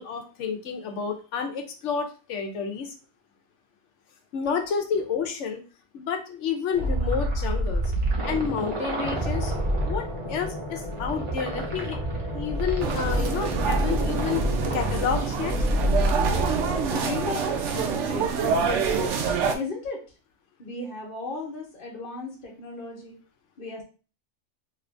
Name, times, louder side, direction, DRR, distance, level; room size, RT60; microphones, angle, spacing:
voice 1, 0.0-2.9 4.3-5.6 5.9-7.9 8.3-9.5 9.8-12.0 12.3-14.4 14.7-15.6, left 6 dB, 90° left, 5 dB, 1.0 m, -30 dB
sound 1, 6.7-16.8, right 1 dB, 35° right, 0.6 m, -28 dB
sound 2, 9.0-14.8, left 1 dB, 35° left, 0.5 m, -37 dB
sound 3, 12.8-19.5, right 5 dB, 85° right, 0.9 m, -27 dB
voice 2, 16.7-18.4 19.5-20.0 20.6-23.2 23.6-23.8, left 3 dB, 50° left, -2 dB, 1.1 m, -35 dB
2.9 x 2.5 x 3.3 m, 0.35 s
omnidirectional pair, 1.2 m